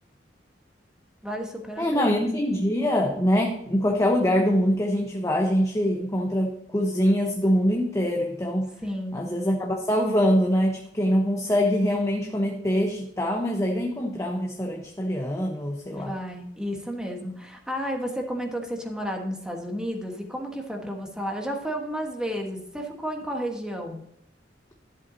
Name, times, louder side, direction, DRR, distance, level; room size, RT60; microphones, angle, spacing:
voice 1, 1.2-2.4 8.8-9.2 15.9-24.0, equal, 5° right, 2 dB, 1.3 m, -32 dB
voice 2, 1.8-8.7 9.1-16.1, equal, 15° left, 1 dB, 0.9 m, -24 dB
11.5 x 8.0 x 2.7 m, 0.74 s
head